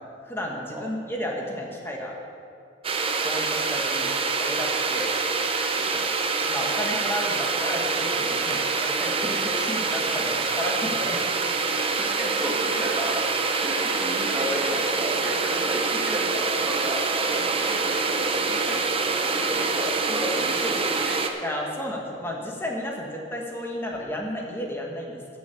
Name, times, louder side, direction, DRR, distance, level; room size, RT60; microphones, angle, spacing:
voice 1, 0.0-2.1 3.2-4.1 4.4-5.1 6.5-11.2 21.4-25.4, left 1 dB, 10° left, -1 dB, 1.6 m, -32 dB
sound 1, 2.8-21.3, right 4 dB, 30° right, 0.7 m, -25 dB
voice 2, 5.7-6.1 8.5-8.7 10.2-10.3 12.0-13.3 13.6-21.2, equal, 10° right, -2 dB, 1.6 m, -33 dB
9.5 x 6.9 x 8.4 m, 2.4 s
head